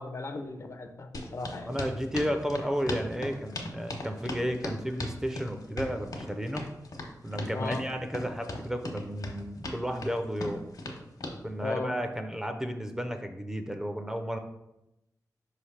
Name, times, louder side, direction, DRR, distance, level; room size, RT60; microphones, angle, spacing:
voice 1, 0.0-1.7 7.5-7.8 11.6-11.9, left 3 dB, 45° left, 7 dB, 0.5 m, -36 dB
sound 1, 1.1-11.4, left 2 dB, 70° left, 1.0 m, -38 dB
voice 2, 1.7-6.7 7.2-10.6 11.4-14.4, equal, 10° right, 6 dB, 0.4 m, -33 dB
5.3 x 3.2 x 5.5 m, 0.91 s
wide cardioid pair, 165°, 7 cm